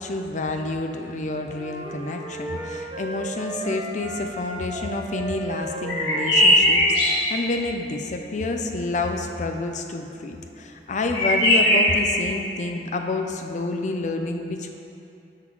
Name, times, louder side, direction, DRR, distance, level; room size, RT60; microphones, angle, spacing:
voice 1, 0.0-14.7, left 2 dB, 45° left, 4 dB, 0.5 m, -29 dB
sound 1, 1.5-7.3, right 2 dB, 30° right, 0.8 m, -34 dB
sound 2, 5.9-7.3 11.1-12.1, equal, 70° left, 1.6 m, -19 dB
7.8 x 3.7 x 4.7 m, 2.7 s
head